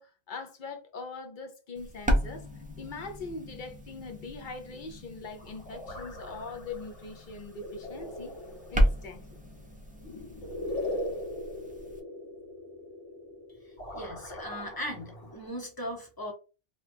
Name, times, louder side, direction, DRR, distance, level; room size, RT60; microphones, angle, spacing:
voice 1, 0.0-2.4 2.8-8.3 8.7-9.2, left 3 dB, 55° left, 0.7 m, -41 dB
sound 1, 1.8-12.0, equal, 10° right, 0.4 m, -34 dB
sound 2, 5.4-15.5, left 1 dB, 75° left, 1.6 m, -40 dB
voice 2, 13.9-16.3, equal, 20° left, 0.8 m, -38 dB
2.8 x 2.3 x 3.4 m
omnidirectional pair, 1.2 m